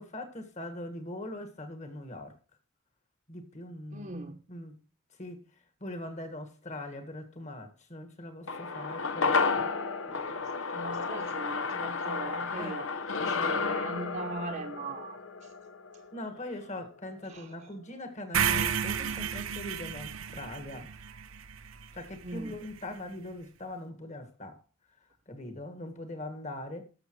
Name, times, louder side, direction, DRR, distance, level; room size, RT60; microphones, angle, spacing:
voice 1, 0.0-2.4 3.3-4.8 5.2-5.4 5.8-9.7 12.6-12.8 13.2-13.5 13.9-14.0 16.1-20.9 21.9-24.6 25.3-26.8, left 1 dB, 35° left, 1.8 m, -41 dB
voice 2, 3.9-4.4 10.1-12.9 13.2-15.2 17.3-17.5 22.2-22.6, right 2 dB, 40° right, 1.0 m, -40 dB
sound 1, 8.5-17.0 17.3-17.4, left 4 dB, 65° left, 0.8 m, -32 dB
sound 2, 18.3-22.5, right 8 dB, 80° right, 0.7 m, -32 dB
18.5 x 7.0 x 3.2 m
head